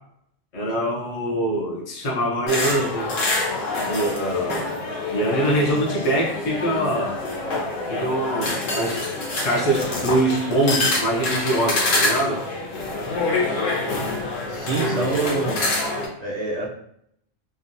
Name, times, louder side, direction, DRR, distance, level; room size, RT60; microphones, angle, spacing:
voice 1, 0.5-3.1 3.8-4.7 5.1-7.1 7.9-9.0 9.4-12.4 14.8-15.5, right 1 dB, 45° left, -3 dB, 0.5 m, -24 dB
sound 1, 2.5-16.1, left 2 dB, 80° left, 1.2 m, -26 dB
voice 2, 14.5-15.6 16.2-16.7, right 3 dB, 80° right, -4 dB, 0.3 m, -26 dB
3.4 x 2.1 x 2.6 m, 0.72 s
omnidirectional pair, 1.3 m